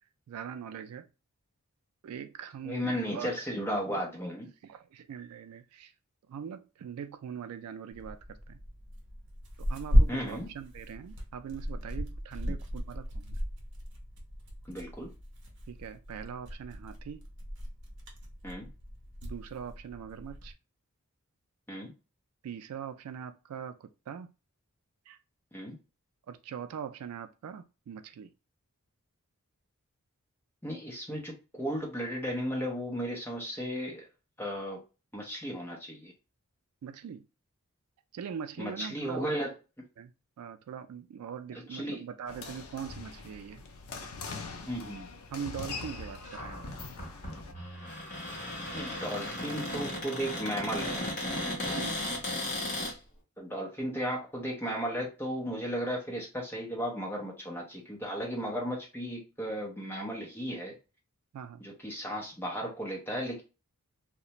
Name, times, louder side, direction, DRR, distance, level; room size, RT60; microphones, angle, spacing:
voice 1, 0.3-1.1 2.0-3.4 4.6-5.9 6.3-8.6 9.6-13.4 15.7-17.3 19.2-20.5 22.4-24.3 25.1-25.2 26.3-28.3 36.8-37.2 38.1-39.3 40.0-40.1 40.4-43.6 45.3-46.8 51.7-52.0 61.3-61.6, right 8 dB, 80° right, 0.3 m, -42 dB
voice 2, 2.6-4.5 10.1-10.5 14.7-15.1 18.4-18.7 21.7-21.9 25.5-25.8 30.6-34.1 34.4-34.8 35.1-36.1 38.6-39.5 41.7-42.0 44.7-45.1 48.7-51.1 53.4-60.7 61.6-63.4, equal, 10° left, 0.7 m, -35 dB
Tearing, 7.9-20.5, equal, 55° right, 0.7 m, -34 dB
sound 1, 42.3-47.5, left 4 dB, 70° left, 0.5 m, -42 dB
Cupboard open or close, 46.2-52.9, left 1 dB, 35° left, 1.0 m, -36 dB
2.4 x 2.1 x 2.8 m
head